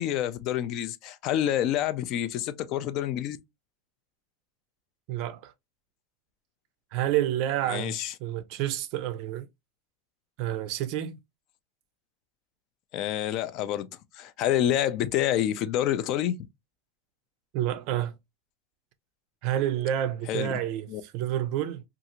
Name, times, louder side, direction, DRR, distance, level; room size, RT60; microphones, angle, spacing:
voice 1, 0.0-3.4 7.7-8.1 12.9-13.9 14.2-16.4 20.3-20.5 20.9-21.0, left 11 dB, 45° left, 0.4 m, -28 dB
voice 2, 5.1-5.5 6.9-9.5 10.4-11.2 17.5-18.1 19.4-21.8, right 12 dB, 50° right, 0.4 m, -29 dB
2.6 x 2.4 x 2.9 m
supercardioid pair, 145°, 0 cm